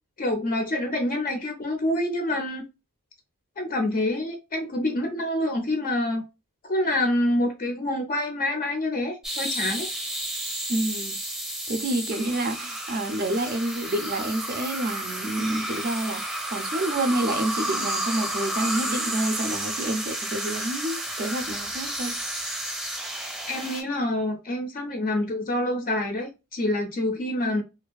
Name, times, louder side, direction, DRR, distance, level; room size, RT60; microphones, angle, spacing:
voice 1, 0.2-2.6 3.6-6.2 6.7-9.9 23.5-27.6, left 1 dB, 40° left, 0.4 m, -27 dB
sound 1, 9.2-23.8, right 1 dB, 5° right, 0.6 m, -31 dB
voice 2, 10.7-11.2 11.7-22.1, right 1 dB, 40° right, 0.4 m, -28 dB
2.5 x 2.3 x 2.2 m
head